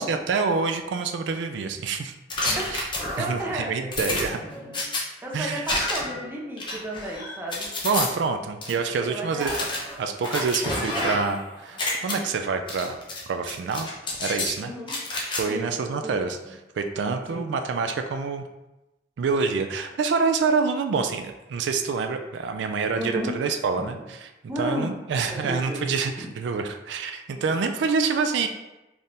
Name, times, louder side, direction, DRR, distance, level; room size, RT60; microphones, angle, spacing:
voice 1, 0.0-2.1 2.7-2.9 3.2-4.4 5.3-5.7 7.8-9.7 10.0-13.0 13.3-13.9 14.2-14.7 15.4-16.4 16.8-18.4 19.2-24.3 24.6-28.5, right 4 dB, 90° right, 6 dB, 0.3 m, -27 dB
sound 1, 2.3-3.4 3.9-5.0 5.7-6.2 6.6-8.1 8.6-8.7 9.4-11.4 11.7-12.1 12.7-13.2 13.5-14.5 14.9-15.4, left 2 dB, 25° left, 0.7 m, -29 dB
voice 2, 3.2-4.2 5.2-7.7 9.1-9.6 14.6-15.0 15.5-15.7 16.0-16.2 17.3-17.5 23.0-23.4 23.8-23.9 24.5-24.9 25.4-25.8 26.2-26.3, right 1 dB, 15° right, -3 dB, 0.7 m, -32 dB
4.2 x 3.5 x 2.5 m, 1.0 s
head